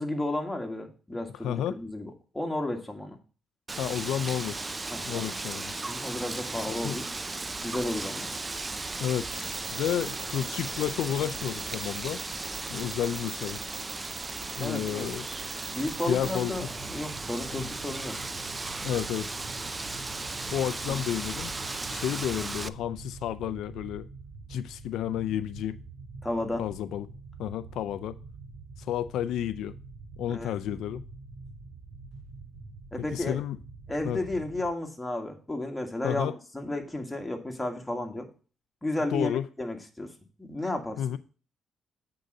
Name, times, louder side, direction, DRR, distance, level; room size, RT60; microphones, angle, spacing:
voice 1, 0.0-3.2 4.9-5.3 5.9-7.1 7.6-8.3 14.6-15.1 15.7-18.2 20.8-21.0 26.2-26.6 30.3-30.5 32.9-33.4 33.9-38.3 38.8-40.1 40.4-41.0, left 1 dB, 10° left, 1.7 m, -33 dB
voice 2, 1.4-1.8 3.8-4.8 5.1-5.7 6.6-7.0 9.0-12.2 12.7-13.6 14.6-15.3 16.1-16.5 17.5-17.7 18.8-19.3 20.5-21.5 21.9-24.1 24.5-25.8 26.6-27.1 27.4-28.2 28.8-29.7 30.2-31.0 33.1-33.6 34.0-34.2 36.0-36.3 39.1-39.5 41.0-41.2, left 11 dB, 85° left, 0.4 m, -31 dB
Wind, 3.7-22.7, right 3 dB, 25° right, 0.4 m, -36 dB
sound 1, 9.3-16.4, right 6 dB, 60° right, 1.4 m, -42 dB
sound 2, 16.2-34.7, right 3 dB, 80° right, 1.3 m, -46 dB
8.1 x 3.9 x 6.4 m
cardioid pair, 95°, 0 cm